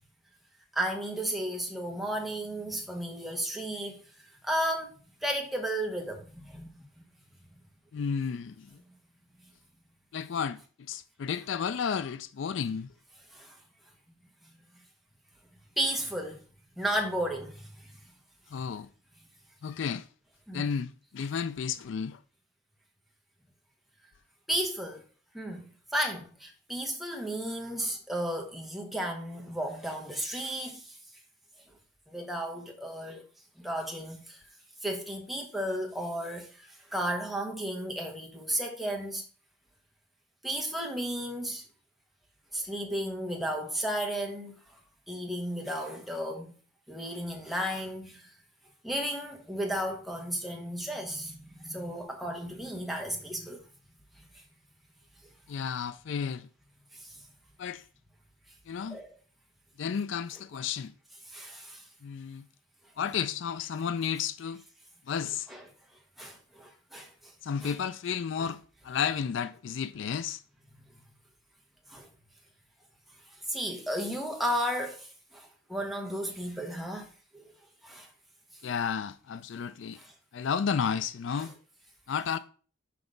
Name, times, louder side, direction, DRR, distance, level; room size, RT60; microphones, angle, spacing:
voice 1, 0.7-4.0 4.4-6.7 13.3-13.6 15.8-16.4 16.8-18.0 20.5-20.7 24.5-25.0 25.3-31.0 32.1-33.2 33.6-34.4 34.8-39.2 40.4-41.6 42.5-44.5 45.1-46.5 46.9-48.3 48.8-53.6 54.3-54.4 56.9-57.2 58.9-59.2 61.3-61.9 65.5-65.6 66.2-67.3 67.6-67.7 68.4-68.5 71.9-72.1 73.5-77.4 77.8-78.1 80.0-80.1 81.3-81.5, equal, ahead, 1.2 m, -34 dB
voice 2, 7.9-8.7 10.1-10.6 10.9-12.9 18.5-18.9 19.6-20.1 20.5-22.2 55.5-56.5 57.6-57.8 58.7-59.0 59.8-60.9 62.0-62.4 63.0-64.6 65.1-65.5 67.4-70.4 78.6-80.0 80.3-81.5 82.1-82.4, left 7 dB, 65° left, 0.4 m, -32 dB
6.0 x 4.8 x 5.1 m
head